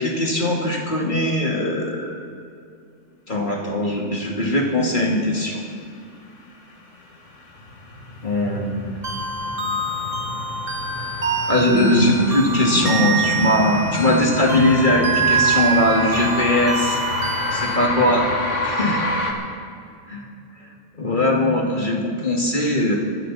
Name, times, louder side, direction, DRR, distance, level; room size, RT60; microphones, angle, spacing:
voice 1, 0.0-2.1 3.3-5.6 8.2-8.8 11.5-17.0 17.5-18.3 18.6-19.0 20.1-20.2 21.0-23.0, left 1 dB, 40° left, -1 dB, 2.3 m, -20 dB
sound 1, 6.5-19.3, left 2 dB, 75° left, 2.2 m, -30 dB
sound 2, 9.0-17.8, right 4 dB, 50° right, 1.7 m, -25 dB
24.5 x 12.5 x 4.1 m, 2.3 s
omnidirectional pair, 1.2 m